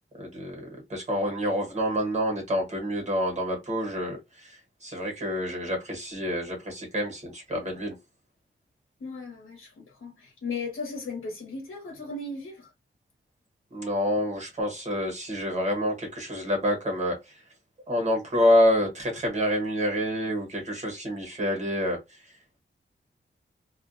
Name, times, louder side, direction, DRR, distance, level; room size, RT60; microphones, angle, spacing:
voice 1, 0.1-7.9 13.7-17.4 17.9-22.3, equal, 35° right, 1.2 m, -27 dB
voice 2, 9.0-12.7, left 3 dB, 80° left, 0.9 m, -36 dB
2.4 x 2.1 x 2.5 m
wide cardioid pair, 145°, 21 cm